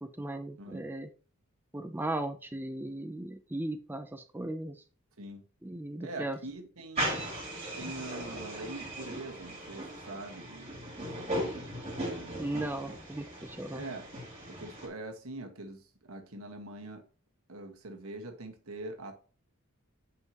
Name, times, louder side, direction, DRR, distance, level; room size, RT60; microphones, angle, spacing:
voice 1, 0.0-1.1 1.7-4.8 5.6-6.4 12.4-13.8, right 1 dB, 10° right, 0.4 m, -37 dB
voice 2, 6.0-7.3 7.7-10.8 11.1-11.7 12.0-12.4 13.7-14.1 14.5-17.0 17.5-19.1, right 2 dB, 75° right, 1.5 m, -43 dB
sound 1, 7.0-14.9, right 1 dB, 30° right, 2.8 m, -38 dB
9.3 x 5.7 x 2.9 m
head